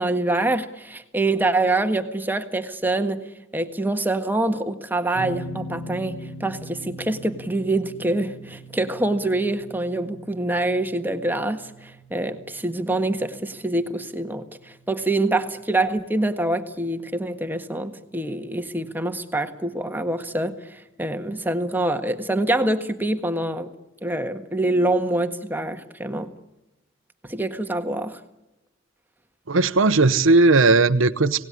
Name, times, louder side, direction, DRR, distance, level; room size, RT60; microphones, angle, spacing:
voice 1, 0.0-3.2 3.5-23.7 24.0-26.3 27.3-28.2, right 2 dB, 10° right, 1.6 m, -25 dB
sound 1, 5.1-18.1, right 1 dB, 60° left, 3.4 m, -42 dB
voice 2, 29.5-31.5, right 3 dB, 90° right, 0.9 m, -17 dB
26.0 x 18.5 x 9.9 m
head